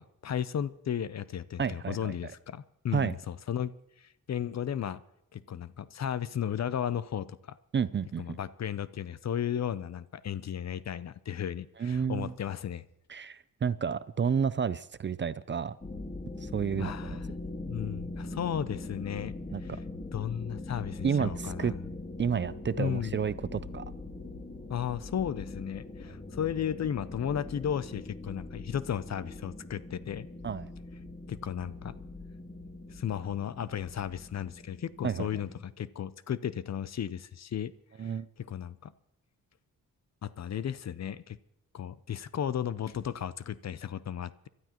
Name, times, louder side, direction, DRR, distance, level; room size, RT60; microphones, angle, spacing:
voice 1, 0.0-5.0 5.3-7.6 8.2-12.8 16.8-17.2 17.7-19.3 19.6-19.7 20.1-21.7 22.8-23.2 24.7-30.3 31.3-32.0 32.9-37.7 38.0-38.9 40.2-41.4 41.7-44.5, left 9 dB, 50° left, 0.6 m, -34 dB
voice 2, 1.6-2.3 2.9-3.2 7.7-8.4 11.8-12.3 13.1-15.8 16.4-17.2 19.5-19.6 21.0-21.7 22.2-23.8 30.4-30.7 35.0-35.3 38.0-38.3, right 6 dB, 35° right, 0.4 m, -31 dB
sound 1, 15.8-35.6, left 2 dB, 20° left, 1.8 m, -42 dB
28.5 x 12.5 x 3.0 m
cardioid pair, 80°, 34 cm